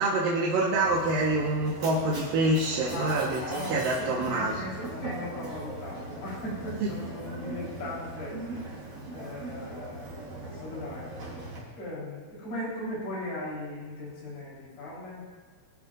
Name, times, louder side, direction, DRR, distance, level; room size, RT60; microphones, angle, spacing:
voice 1, 0.0-4.6 6.8-6.9, right 2 dB, 85° right, -4 dB, 3.1 m, -26 dB
Mechanisms, 0.8-11.6, right 1 dB, 45° right, 5.1 m, -40 dB
voice 2, 2.9-10.1 10.4-15.2, left 1 dB, 75° left, -7 dB, 5.8 m, -38 dB
23.0 x 13.5 x 2.6 m, 1.5 s
omnidirectional pair, 3.8 m